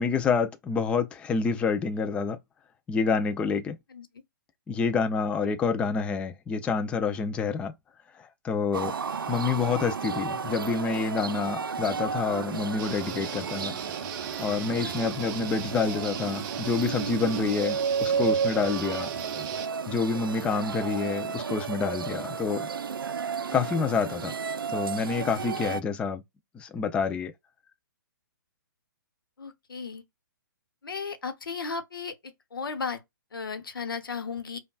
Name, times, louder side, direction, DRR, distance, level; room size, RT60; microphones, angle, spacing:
voice 1, 0.0-2.4 2.9-3.8 4.7-7.7 8.1-8.9 9.3-13.7 14.2-19.1 19.9-22.7 23.5-24.4 24.7-26.2 26.5-27.3, left 5 dB, 10° left, 0.3 m, -28 dB
sound 1, 8.7-25.8, right 6 dB, 90° right, 0.4 m, -32 dB
Guitar, 12.8-19.7, right 9 dB, 30° right, 0.6 m, -39 dB
voice 2, 29.4-30.0 30.8-33.0 33.3-34.6, left 5 dB, 80° left, 0.9 m, -35 dB
5.2 x 2.3 x 2.3 m
hypercardioid pair, 130°, 11 cm